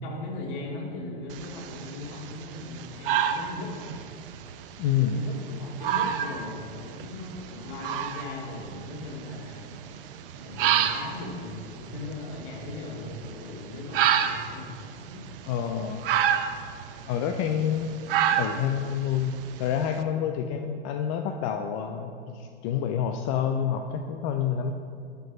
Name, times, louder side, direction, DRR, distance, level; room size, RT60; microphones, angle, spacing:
voice 1, 0.0-3.7 5.0-9.8 10.4-15.3, left 2 dB, 50° left, -1 dB, 2.1 m, -38 dB
sound 1, 1.3-20.0, right 9 dB, 55° right, 0.6 m, -31 dB
voice 2, 4.8-5.2 15.5-16.0 17.1-17.9 18.4-24.7, left 8 dB, 30° left, 5 dB, 0.4 m, -28 dB
12.0 x 4.6 x 4.8 m, 2.3 s
hypercardioid pair, 110°, 34 cm